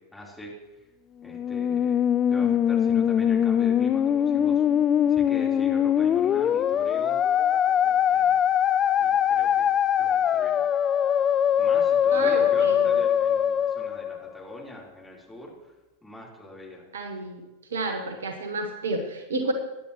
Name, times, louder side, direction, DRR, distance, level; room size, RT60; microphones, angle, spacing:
voice 1, 0.1-0.8 1.2-2.0 2.3-4.6 5.1-7.2 7.8-8.4 9.0-9.7 10.0-10.6 11.6-15.7 16.0-16.9, equal, 5° left, -4 dB, 3.9 m, -43 dB
Musical instrument, 1.3-14.6, left 9 dB, 25° left, 0.3 m, -22 dB
voice 2, 12.1-12.9 16.9-17.4 17.7-19.5, right 2 dB, 65° right, 6 dB, 1.4 m, -30 dB
22.5 x 10.0 x 3.1 m, 1.1 s
figure-of-eight pair, 90°, 0 cm